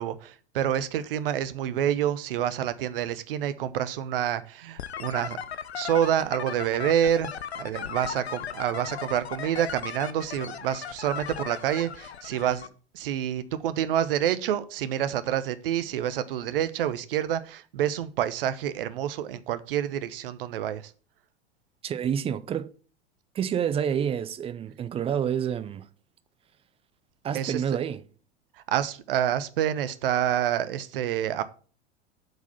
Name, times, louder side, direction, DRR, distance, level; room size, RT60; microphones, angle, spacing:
voice 1, 0.0-5.4 5.7-7.3 7.6-12.7 12.9-20.9 27.3-27.8 28.7-31.4, right 10 dB, 55° right, 0.9 m, -28 dB
sound 1, 4.8-12.7, left 8 dB, 75° left, 0.7 m, -37 dB
voice 2, 21.8-22.7 23.3-25.9 27.2-28.0, right 8 dB, 15° right, 0.5 m, -28 dB
7.8 x 4.9 x 6.9 m
figure-of-eight pair, 85°, 33 cm